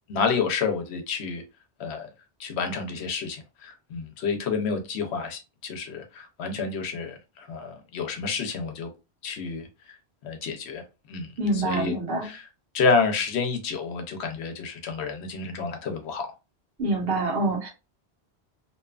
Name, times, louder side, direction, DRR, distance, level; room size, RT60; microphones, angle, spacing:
voice 1, 0.1-1.4 1.8-2.1 2.4-8.9 9.2-10.0 10.2-12.0 12.2-12.5 12.7-16.3, left 5 dB, 80° left, 0.9 m, -29 dB
voice 2, 11.4-12.3 16.8-17.7, right 2 dB, 65° right, 1.1 m, -26 dB
2.7 x 2.3 x 2.3 m
omnidirectional pair, 1.1 m